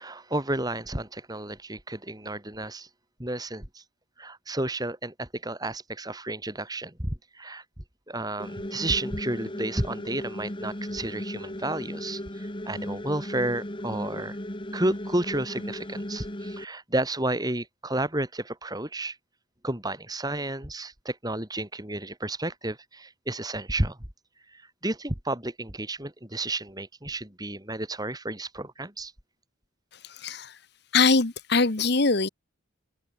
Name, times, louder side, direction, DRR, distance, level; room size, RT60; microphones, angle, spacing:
voice 1, 0.0-2.9 3.2-3.8 4.2-7.6 8.1-14.4 14.7-19.2 19.6-24.0 24.5-29.1, right 1 dB, 20° right, 3.8 m, -31 dB
sound 1, 8.4-16.6, left 1 dB, 25° left, 2.3 m, -36 dB
voice 2, 30.2-30.5 30.9-32.3, left 4 dB, 55° left, 1.3 m, -22 dB
head